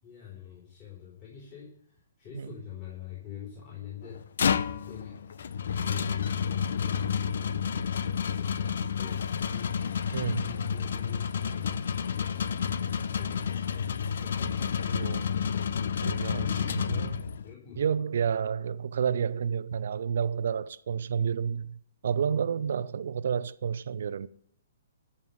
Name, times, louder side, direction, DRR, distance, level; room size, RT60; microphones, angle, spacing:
voice 1, 0.0-4.2 4.8-5.2 5.8-9.8 10.4-14.8 16.3-17.8, left 9 dB, 35° left, 4.4 m, -44 dB
sound 1, 4.1-17.5, left 7 dB, 65° left, 0.7 m, -30 dB
voice 2, 10.1-10.7 14.8-15.3 16.0-16.4 16.9-17.1 17.8-24.3, right 7 dB, 60° right, 0.6 m, -30 dB
14.0 x 5.6 x 9.4 m
figure-of-eight pair, 125°, 0 cm